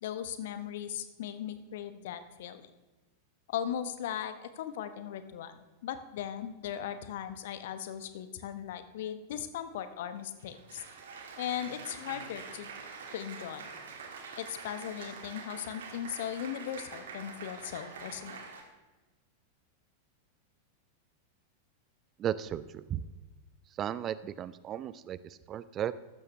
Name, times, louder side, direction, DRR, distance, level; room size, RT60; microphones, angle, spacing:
voice 1, 0.0-2.7 3.5-10.8 11.4-12.7 13.1-13.7 14.4-18.4, left 10 dB, 55° left, 11 dB, 0.9 m, -38 dB
Applause, 10.2-18.6, right 5 dB, 60° right, 1.7 m, -45 dB
voice 2, 22.2-23.0 23.8-25.9, right 10 dB, 30° right, 17 dB, 0.4 m, -35 dB
14.5 x 12.5 x 3.2 m, 1.2 s
figure-of-eight pair, 90°, 0 cm